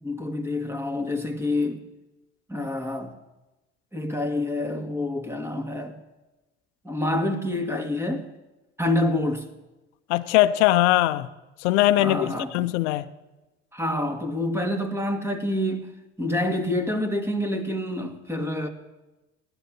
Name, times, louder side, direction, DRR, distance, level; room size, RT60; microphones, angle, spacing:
voice 1, 0.0-1.8 2.5-3.2 3.9-6.0 6.8-8.3 8.8-9.4 12.0-12.7 13.7-15.9 16.2-18.7, left 1 dB, 5° right, 2.1 m, -27 dB
voice 2, 10.1-11.3 11.6-13.0, left 15 dB, 80° left, 0.6 m, -21 dB
15.5 x 10.5 x 6.2 m
hypercardioid pair, 65°, 34 cm